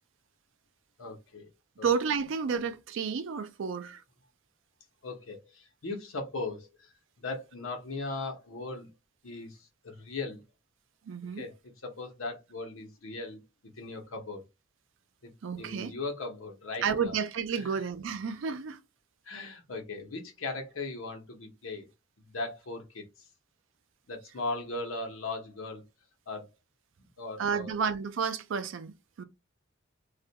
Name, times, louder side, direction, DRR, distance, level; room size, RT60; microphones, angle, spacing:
voice 1, 1.0-1.5 1.8-1.9 5.0-8.9 9.2-10.4 11.4-11.6 11.8-13.4 13.8-14.4 15.2-15.3 15.6-17.1 17.5-17.8 19.2-21.9 22.2-23.1 24.1-25.8 26.3-26.5 27.0-27.7, left 3 dB, 85° left, 0.8 m, -38 dB
voice 2, 1.8-4.0 11.1-11.4 15.4-15.9 16.8-18.8 27.4-29.2, right 6 dB, 65° right, 0.4 m, -31 dB
2.4 x 2.2 x 2.7 m
head